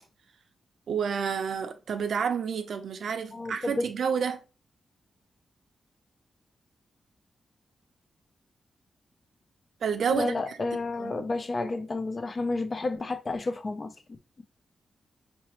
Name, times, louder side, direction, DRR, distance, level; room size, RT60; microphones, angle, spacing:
voice 1, 0.9-4.4 9.8-10.6 11.0-11.2, right 6 dB, 70° right, 0.6 m, -29 dB
voice 2, 3.3-3.9 10.1-13.9, left 3 dB, 35° left, 0.5 m, -31 dB
5.6 x 3.0 x 3.0 m
wide cardioid pair, 145°, 0 cm